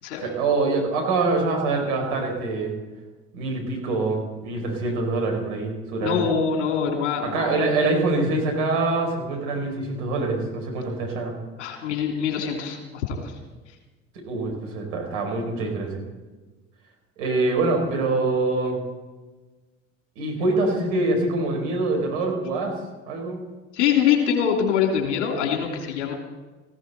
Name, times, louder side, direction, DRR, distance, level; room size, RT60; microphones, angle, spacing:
voice 1, 0.2-2.7 3.3-6.2 7.2-11.4 14.3-16.0 17.2-18.8 20.1-22.8 23.1-23.4, right 3 dB, 70° right, 2 dB, 5.0 m, -24 dB
voice 2, 6.0-7.7 11.6-13.3 23.7-26.1, left 7 dB, 75° left, 2 dB, 3.3 m, -24 dB
17.5 x 16.0 x 4.3 m, 1.2 s
figure-of-eight pair, 65°, 35 cm